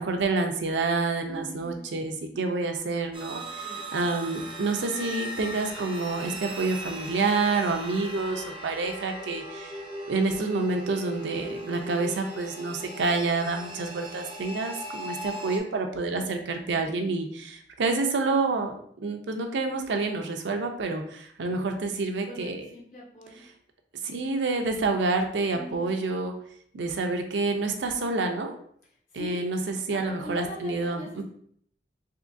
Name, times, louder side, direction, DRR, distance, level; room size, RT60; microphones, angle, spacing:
voice 1, 0.0-3.7 3.9-9.8 10.1-22.7 24.0-26.3 26.7-28.5 29.1-31.2, right 3 dB, 85° right, 4 dB, 0.5 m, -28 dB
voice 2, 1.3-1.9 3.6-3.8 22.2-23.4 25.5-25.9 29.1-29.5 29.9-31.2, equal, 45° left, -5 dB, 0.9 m, -41 dB
sound 1, 3.1-15.6, right 1 dB, 30° right, 0.5 m, -38 dB
3.6 x 3.0 x 2.5 m, 0.65 s
head